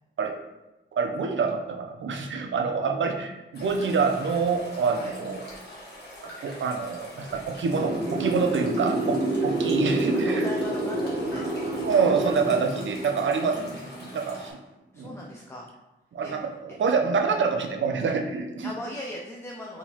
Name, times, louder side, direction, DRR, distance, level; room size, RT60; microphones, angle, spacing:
voice 1, 0.9-5.5 6.2-10.5 11.8-14.5 15.0-15.1 16.1-18.7, right 5 dB, 70° right, 4 dB, 0.6 m, -26 dB
sound 1, 3.5-14.5, left 1 dB, 55° left, 1.5 m, -44 dB
sound 2, 7.7-13.9, right 1 dB, 35° right, 0.7 m, -28 dB
voice 2, 10.1-12.0 12.7-12.9 13.3-14.4 14.9-15.7 16.2-16.3 16.7-16.8 18.6-19.8, left 1 dB, 15° left, -3 dB, 0.5 m, -40 dB
4.5 x 3.8 x 2.8 m, 1.0 s
wide cardioid pair, 110°, 20 cm